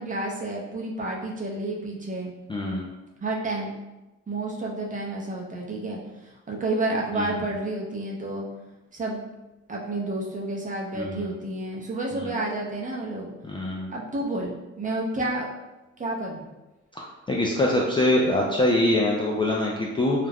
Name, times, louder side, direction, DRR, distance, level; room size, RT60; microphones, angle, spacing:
voice 1, 0.0-2.3 3.2-3.7 4.3-8.4 8.9-9.2 9.7-13.3 13.9-15.5 16.0-16.4, right 2 dB, 25° right, -3 dB, 0.6 m, -30 dB
voice 2, 2.5-2.9 7.2-7.3 10.9-11.3 12.1-12.3 13.4-13.9 17.0-20.3, left 1 dB, 20° left, -3 dB, 0.3 m, -24 dB
2.4 x 2.1 x 3.3 m, 1.0 s
cardioid pair, 90°, 30 cm